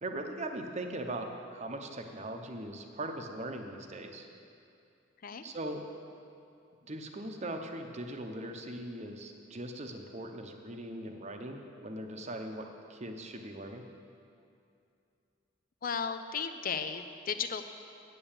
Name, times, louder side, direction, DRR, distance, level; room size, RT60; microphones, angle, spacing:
voice 1, 0.0-4.3 5.4-5.8 6.8-13.8, right 1 dB, 35° right, 4 dB, 0.8 m, -40 dB
voice 2, 15.8-17.6, left 6 dB, 45° left, 9 dB, 0.5 m, -35 dB
8.8 x 8.3 x 7.2 m, 2.6 s
head